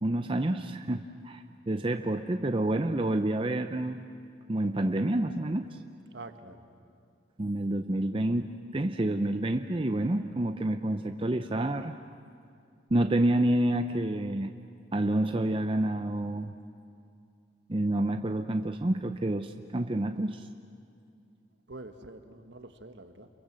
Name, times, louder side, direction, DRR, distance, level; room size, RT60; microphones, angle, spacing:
voice 1, 0.0-4.0 4.5-5.8 7.4-11.9 12.9-14.5 14.9-16.5 17.7-20.5, right 1 dB, 30° right, 7 dB, 0.6 m, -28 dB
voice 2, 6.1-6.6 21.7-23.3, right 2 dB, 65° right, 7 dB, 1.5 m, -46 dB
29.5 x 23.0 x 7.6 m, 2.4 s
head